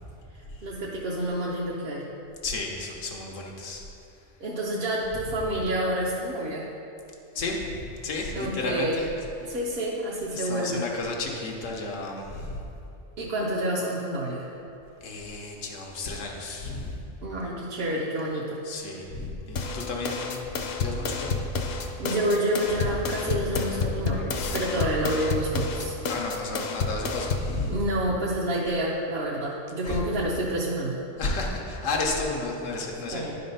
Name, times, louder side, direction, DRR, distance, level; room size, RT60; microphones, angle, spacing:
voice 1, 0.6-2.1 4.4-6.7 8.3-9.0 9.5-10.8 13.2-14.6 17.2-18.6 22.0-26.0 27.7-31.0 33.1-33.4, right 1 dB, 55° right, -5 dB, 1.0 m, -28 dB
voice 2, 2.4-3.8 7.3-9.1 9.4-9.6 10.3-12.6 15.0-17.0 18.6-21.6 24.5-24.6 26.1-27.8 29.8-30.0 31.2-33.3, left 3 dB, 90° left, 0 dB, 1.3 m, -32 dB
sound 1, 19.6-27.6, left 4 dB, 60° left, 0.8 m, -30 dB
10.5 x 4.2 x 5.4 m, 2.8 s
omnidirectional pair, 1.3 m